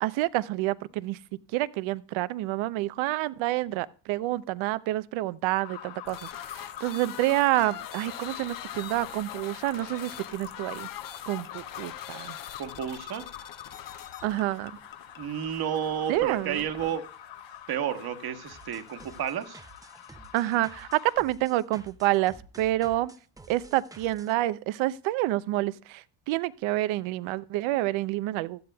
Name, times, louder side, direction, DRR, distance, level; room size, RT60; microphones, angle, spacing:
voice 1, 0.0-1.2 1.5-10.9 11.3-12.4 14.2-14.7 16.1-16.6 20.3-23.1 23.5-28.6, right 16 dB, 85° right, 0.7 m, -28 dB
sound 1, 5.6-21.2, left 10 dB, 75° left, 6.4 m, -45 dB
sound 2, 6.0-19.3, left 12 dB, 45° left, 0.6 m, -44 dB
voice 2, 12.6-13.2 15.2-17.0 17.7-19.6, right 9 dB, 55° right, 1.4 m, -31 dB
sound 3, 18.5-24.3, right 2 dB, 10° right, 0.6 m, -51 dB
16.5 x 12.5 x 2.3 m
cardioid pair, 115°, 46 cm